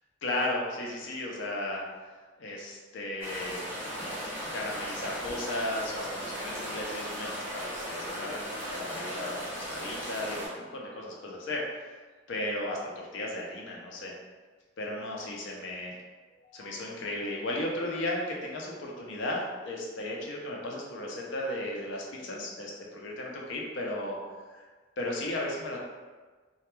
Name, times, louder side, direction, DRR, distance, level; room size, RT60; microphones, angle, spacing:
voice 1, 0.2-1.8 2.4-3.6 3.9-4.0 4.5-11.8 12.3-14.1 14.8-15.9 16.4-24.2 25.0-25.8, left 1 dB, 70° left, -1 dB, 0.5 m, -35 dB
sound 1, 3.2-10.5, equal, 10° right, 0.5 m, -37 dB
2.2 x 2.1 x 2.9 m, 1.4 s
head